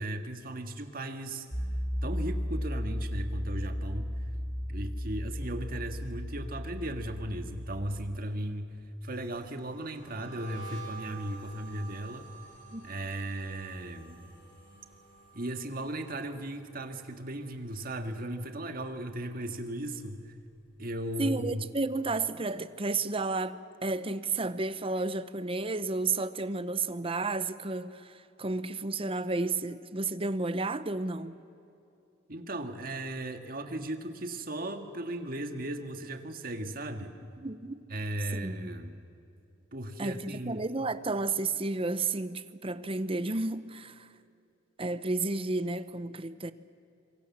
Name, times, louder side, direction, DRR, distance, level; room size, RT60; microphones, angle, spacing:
voice 1, 0.0-1.5 2.0-4.3 4.7-12.3 12.8-14.3 15.3-20.4 20.8-21.6 32.3-37.2 37.9-39.0 39.7-40.6, right 1 dB, 50° right, 1.8 m, -37 dB
sound 1, 1.5-8.2, equal, 15° left, 2.6 m, -35 dB
sound 2, 9.1-18.2 18.5-18.9 19.3-20.8, right 4 dB, 85° left, 7.1 m, -50 dB
voice 2, 21.2-31.4 37.4-37.8 38.3-38.7 40.0-44.1 44.8-46.5, right 3 dB, 30° right, 0.9 m, -32 dB
26.0 x 24.5 x 7.3 m
head